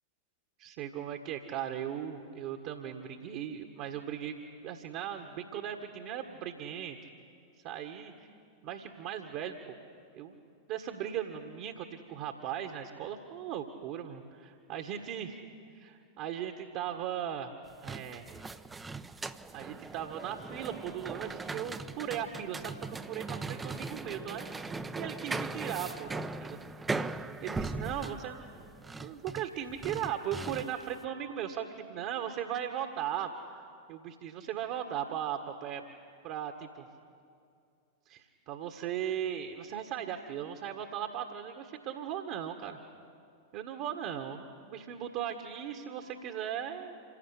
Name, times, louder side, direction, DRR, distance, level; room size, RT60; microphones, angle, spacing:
voice 1, 0.6-4.4 4.6-7.0 7.6-8.3 8.6-9.6 10.1-10.4 10.7-15.4 15.7-17.5 17.8-18.3 19.5-24.5 24.9-26.6 27.4-28.4 29.0-33.6 33.9-35.8 36.2-36.9 38.1-42.8 43.5-46.9, right 9 dB, 45° right, 5 dB, 1.6 m, -38 dB
sound 1, 17.7-30.9, right 3 dB, 10° right, 0.8 m, -39 dB
27.0 x 17.5 x 9.9 m, 2.5 s
figure-of-eight pair, 90°, 0 cm